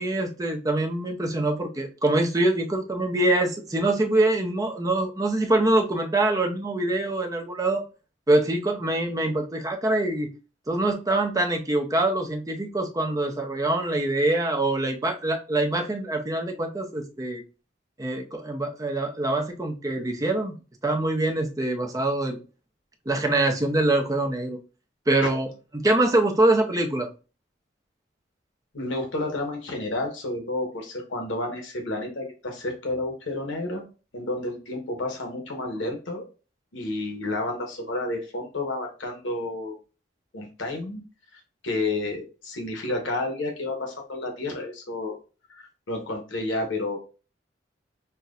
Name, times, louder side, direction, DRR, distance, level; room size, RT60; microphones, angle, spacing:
voice 1, 0.0-7.8 8.3-10.3 10.7-17.4 18.0-20.5 20.8-22.4 23.1-24.6 25.1-25.5 25.7-27.1, right 2 dB, 20° right, 3 dB, 0.6 m, -24 dB
voice 2, 28.7-33.8 34.1-36.2 36.7-39.8 40.3-41.0 41.3-45.2 45.5-47.0, left 2 dB, 90° left, 3 dB, 0.9 m, -31 dB
5.6 x 2.1 x 2.4 m, 0.33 s
head